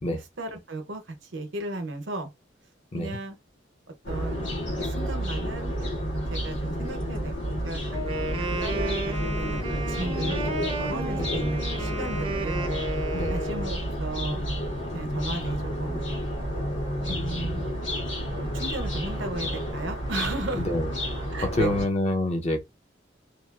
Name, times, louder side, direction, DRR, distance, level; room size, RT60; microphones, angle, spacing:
voice 1, 0.1-2.3 2.9-3.4 4.1-4.4 4.8-5.7 6.3-7.8 8.6-12.6 13.3-14.4 14.9-16.0 17.4-17.7 18.4-20.6 21.3-21.7, right 2 dB, 75° right, 0.8 m, -35 dB
sound 1, 4.0-21.8, equal, 75° left, 1.3 m, -30 dB
Wind instrument woodwind instrument, 7.9-13.8, right 2 dB, 30° right, 0.5 m, -33 dB
voice 2, 17.1-17.7 20.7-20.9 21.5-22.6, left 1 dB, 35° left, 0.5 m, -27 dB
2.9 x 2.3 x 2.3 m
head